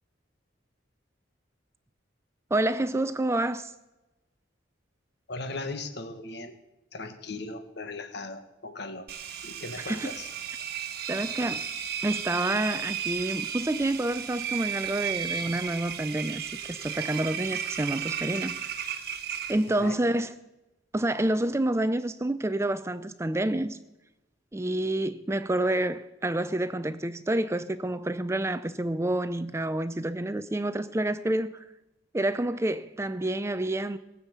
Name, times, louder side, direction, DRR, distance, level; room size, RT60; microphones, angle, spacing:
voice 1, 2.5-3.7 9.8-10.1 11.1-11.6 12.0-18.5 19.5-20.3 20.9-23.8 24.5-31.6 32.1-34.0, right 1 dB, 15° right, 0.4 m, -28 dB
voice 2, 5.3-6.6 6.9-9.1 9.4-10.3 19.8-20.0, left 2 dB, 60° left, 1.5 m, -38 dB
Engine, 9.1-19.9, right 8 dB, 55° right, 1.1 m, -34 dB
19.0 x 7.2 x 8.2 m
head